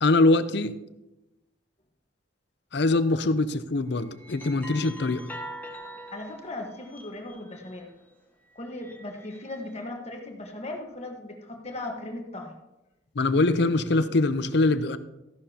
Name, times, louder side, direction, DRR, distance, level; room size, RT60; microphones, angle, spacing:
voice 1, 0.0-0.7 2.7-5.3 13.2-15.0, left 2 dB, 65° left, 12 dB, 0.6 m, -23 dB
sound 1, 2.9-3.2 3.9-8.0 8.6-9.7, equal, 10° left, 1.4 m, -44 dB
voice 2, 6.1-7.9 8.5-12.5, left 2 dB, 35° left, 2 dB, 1.4 m, -37 dB
14.0 x 11.0 x 2.9 m, 0.96 s
head